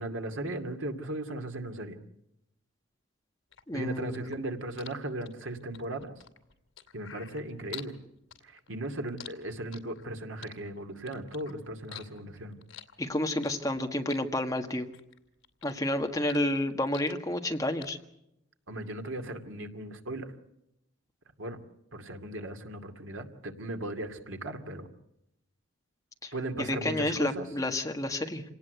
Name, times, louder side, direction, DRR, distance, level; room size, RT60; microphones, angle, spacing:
voice 1, 0.0-2.0 3.7-6.1 6.9-7.9 8.4-12.6 18.7-20.3 21.4-21.6 21.9-24.9 26.3-27.5, right 1 dB, 80° right, 6 dB, 2.4 m, -37 dB
sound 1, 3.5-8.0 8.3-10.1 10.4-11.5 11.8-13.8 14.1-15.2 15.4-17.5 17.8-17.9, left 10 dB, 80° left, 2.6 m, -47 dB
voice 2, 3.7-4.4 13.0-14.9 15.6-18.0 26.2-26.3 26.6-28.4, left 1 dB, 15° left, 4 dB, 1.6 m, -30 dB
27.5 x 18.5 x 8.1 m, 0.83 s
head